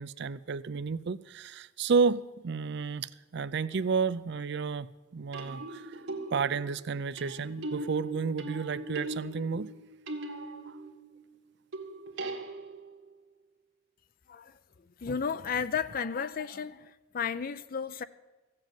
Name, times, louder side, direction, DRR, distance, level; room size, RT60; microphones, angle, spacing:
voice 1, 0.0-6.0 6.3-9.7 10.7-10.8, right 5 dB, 60° right, 0.5 m, -31 dB
sound 1, 3.6-3.9 5.3-11.2 11.7-13.1 15.5-15.6, right 2 dB, 80° right, 1.6 m, -40 dB
voice 2, 15.0-18.0, left 6 dB, 45° left, 0.5 m, -33 dB
15.5 x 7.7 x 9.0 m
head